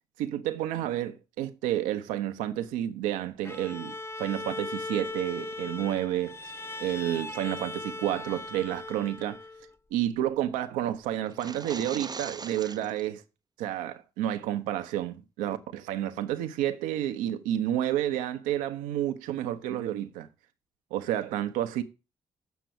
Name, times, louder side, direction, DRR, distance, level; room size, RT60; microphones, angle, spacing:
voice 1, 0.2-6.5 6.8-9.4 9.9-13.2 13.6-20.3 20.9-21.8, right 12 dB, 85° right, 0.9 m, -30 dB
Bowed string instrument, 3.4-9.7, left 2 dB, 20° left, 0.8 m, -39 dB
sound 1, 11.3-13.0, right 5 dB, 30° right, 0.6 m, -40 dB
8.2 x 6.1 x 7.7 m
hypercardioid pair, 45°, 13 cm